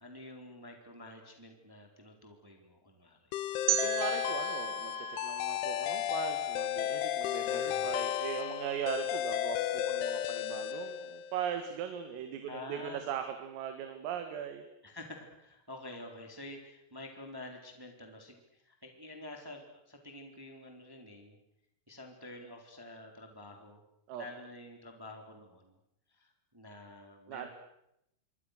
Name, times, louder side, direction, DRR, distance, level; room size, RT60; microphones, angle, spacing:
voice 1, 0.0-3.3 7.5-7.9 12.5-13.0 14.8-21.4 21.9-23.8 24.1-25.8 26.1-27.5, left 2 dB, 5° right, 4 dB, 2.6 m, -48 dB
sound 1, 3.3-11.5, left 12 dB, 75° left, 3.4 m, -34 dB
sound 2, 3.7-6.6, right 11 dB, 55° right, 3.6 m, -36 dB
voice 2, 3.7-14.7 24.1-24.3 27.3-27.5, right 9 dB, 90° right, 7 dB, 4.5 m, -39 dB
27.0 x 25.0 x 6.6 m, 0.79 s
omnidirectional pair, 5.8 m